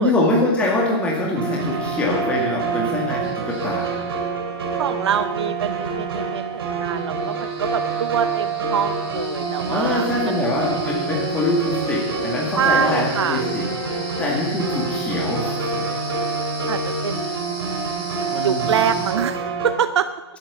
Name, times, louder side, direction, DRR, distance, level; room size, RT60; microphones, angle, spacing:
voice 1, 0.0-4.0 9.7-13.6 13.9-15.9 17.3-17.4 18.3-18.7, left 2 dB, 10° left, -3 dB, 2.3 m, -23 dB
sound 1, 1.4-19.7, right 4 dB, 60° right, 4.5 m, -27 dB
sound 2, 3.2-4.2 6.4-6.5 6.8-19.1, right 1 dB, 10° right, 7.2 m, -38 dB
voice 2, 4.8-10.4 12.5-13.4 14.1-14.2 16.7-17.4 18.4-20.1, right 8 dB, 80° right, 11 dB, 0.8 m, -25 dB
21.5 x 9.0 x 7.1 m, 1.1 s
hypercardioid pair, 175°, 14 cm